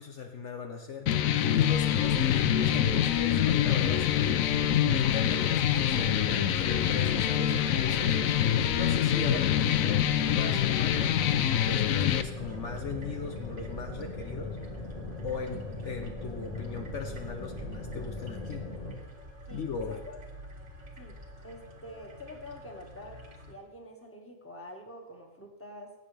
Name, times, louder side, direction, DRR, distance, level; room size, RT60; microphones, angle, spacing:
voice 1, 0.0-4.4 4.9-8.2 8.7-14.6 15.2-18.6 19.5-20.0, left 5 dB, 60° left, 3 dB, 1.1 m, -39 dB
sound 1, 1.1-12.2, left 10 dB, 85° left, 1.1 m, -25 dB
sound 2, 1.7-19.0, left 2 dB, 30° left, 1.6 m, -39 dB
sound 3, 11.3-23.5, equal, 55° right, 1.7 m, -49 dB
voice 2, 19.5-20.2 21.0-21.2 21.4-25.9, left 1 dB, 10° left, 1 dB, 1.7 m, -46 dB
20.0 x 8.9 x 3.4 m, 1.1 s
omnidirectional pair, 1.4 m